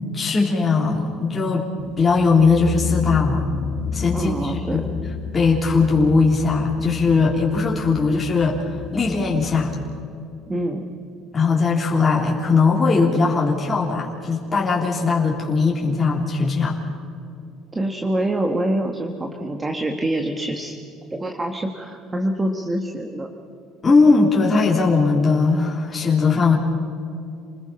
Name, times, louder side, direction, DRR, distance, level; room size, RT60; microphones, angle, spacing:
voice 1, 0.1-1.7 2.0-3.4 3.9-4.9 5.3-8.6 8.9-9.8 11.3-16.8 23.8-26.5, left 4 dB, 20° left, -3 dB, 3.5 m, -19 dB
sound 1, 1.8-10.0, left 5 dB, 55° left, 1.9 m, -31 dB
voice 2, 4.1-4.9 10.5-10.8 17.7-20.8 21.1-23.3, right 1 dB, 15° right, 3 dB, 1.7 m, -25 dB
29.5 x 20.5 x 5.8 m, 2.6 s
cardioid pair, 135°, 0 cm